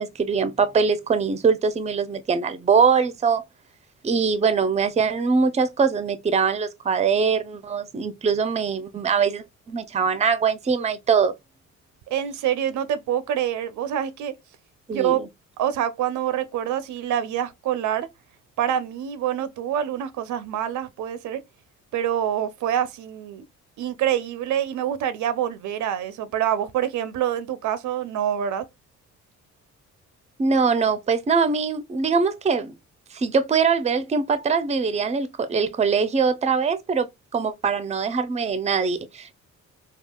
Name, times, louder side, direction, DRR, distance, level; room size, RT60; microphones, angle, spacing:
voice 1, 0.0-3.4 4.0-11.3 14.9-15.3 30.4-32.7 33.1-37.1 37.3-39.4, right 5 dB, 20° right, 0.5 m, -22 dB
voice 2, 12.1-14.3 14.9-15.2 15.6-18.1 18.6-21.4 21.9-23.4 23.8-28.6, right 10 dB, 75° right, 0.5 m, -26 dB
3.5 x 2.3 x 2.2 m
cardioid pair, 90°, 30 cm